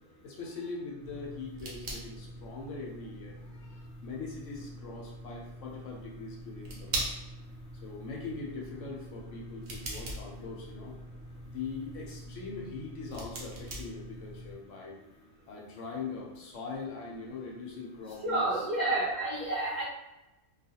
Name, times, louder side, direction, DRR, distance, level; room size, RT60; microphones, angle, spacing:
voice 1, 0.2-7.1 7.8-10.9 11.5-15.0 15.5-18.7, left 4 dB, 80° left, -2 dB, 1.0 m, -42 dB
sound 1, 1.0-14.5, right 1 dB, 75° right, 1.0 m, -42 dB
voice 2, 18.2-19.8, right 2 dB, 45° right, -8 dB, 0.7 m, -29 dB
2.4 x 2.3 x 2.7 m, 1.0 s
omnidirectional pair, 1.3 m